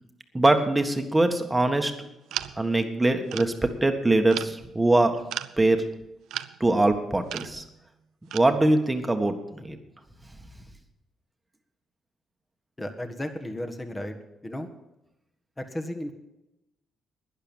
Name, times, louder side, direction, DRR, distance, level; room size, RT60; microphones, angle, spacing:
voice 1, 0.3-2.1 2.6-3.5 3.8-5.2 5.6-5.8 6.6-7.6 8.3-9.8, right 2 dB, 15° right, 6 dB, 1.6 m, -22 dB
sound 1, 2.3-2.7 3.3-3.6 4.3-4.6 5.3-5.5 6.3-6.6 7.3-7.6 8.3-8.4, right 12 dB, 85° right, 0.5 m, -34 dB
voice 2, 12.8-14.1 14.4-14.7 15.6-16.1, left 1 dB, 15° left, 6 dB, 1.6 m, -34 dB
11.5 x 10.5 x 7.3 m, 0.92 s
cardioid pair, 90°, 0 cm